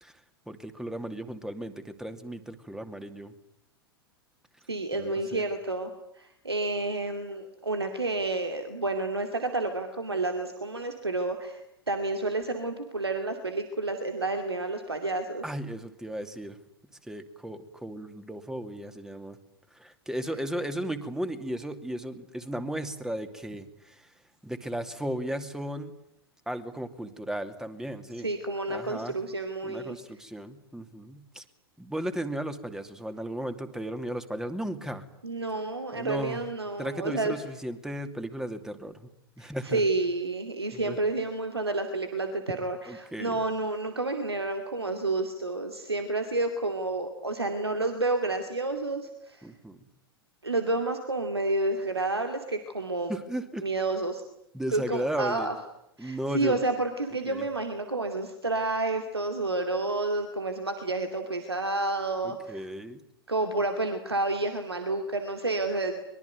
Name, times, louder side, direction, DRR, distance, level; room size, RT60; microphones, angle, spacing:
voice 1, 0.5-3.3 4.9-5.4 15.4-16.6 17.0-19.4 19.7-24.1 24.4-25.9 26.5-28.3 28.7-29.1 29.6-31.4 31.8-35.0 35.9-36.4 36.8-39.1 39.4-39.8 40.7-41.0 42.9-43.4 49.4-49.8 53.1-53.7 54.5-55.5 56.0-56.6 57.3-57.4 62.2-63.0, right 1 dB, 5° right, 8 dB, 2.7 m, -35 dB
voice 2, 4.7-5.9 6.2-15.4 28.2-30.0 35.2-37.3 39.4-49.5 50.4-53.1 53.6-54.2 54.7-55.5 56.0-62.7 63.3-66.0, right 2 dB, 85° right, 6 dB, 2.6 m, -30 dB
24.0 x 22.5 x 9.6 m, 0.75 s
figure-of-eight pair, 90°, 13 cm